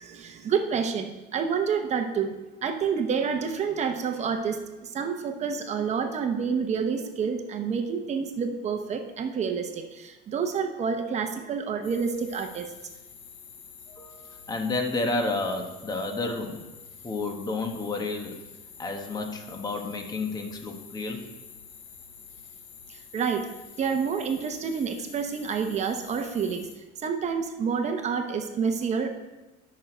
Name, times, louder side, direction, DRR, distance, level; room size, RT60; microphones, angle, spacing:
voice 1, 0.0-2.3 2.6-4.6 4.9-12.6 23.1-23.4 23.8-26.6 27.0-29.1, right 6 dB, 35° right, 6 dB, 0.9 m, -28 dB
sound 1, 11.8-26.8, left 7 dB, 75° left, 1.3 m, -48 dB
voice 2, 13.9-16.7 17.0-18.4 18.8-21.3, left 3 dB, 20° left, 4 dB, 1.2 m, -31 dB
11.5 x 6.3 x 4.4 m, 1.1 s
cardioid pair, 140°, 21 cm